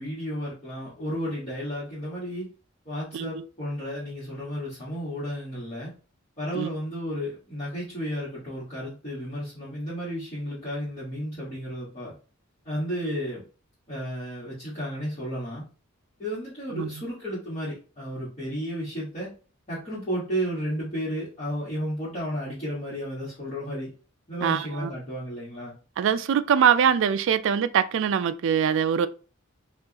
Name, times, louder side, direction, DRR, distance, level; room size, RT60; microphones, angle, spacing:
voice 1, 0.0-2.5 2.8-5.9 6.4-12.1 12.6-13.4 13.9-15.6 16.2-19.3 19.7-23.9 24.3-25.7, equal, 30° left, 1.4 m, -33 dB
voice 2, 3.1-3.4 6.5-6.7 13.0-13.1 16.7-17.0 24.4-24.9 26.0-29.1, right 8 dB, 60° right, 0.3 m, -23 dB
4.5 x 2.5 x 2.8 m
head